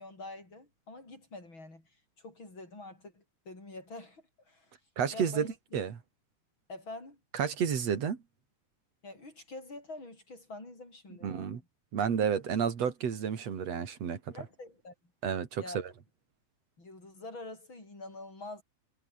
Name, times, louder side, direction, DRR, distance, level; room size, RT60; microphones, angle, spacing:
voice 1, 0.0-1.9 2.2-4.7 5.1-5.8 6.7-7.2 9.0-11.7 14.3-14.9 15.6-15.8 16.8-18.6, left 2 dB, 35° left, 8.8 m, -46 dB
voice 2, 5.0-5.5 5.7-6.0 7.3-8.2 11.2-11.6 11.9-14.2 15.2-15.8, right 7 dB, 55° right, 3.6 m, -30 dB
omnidirectional pair, 3.5 m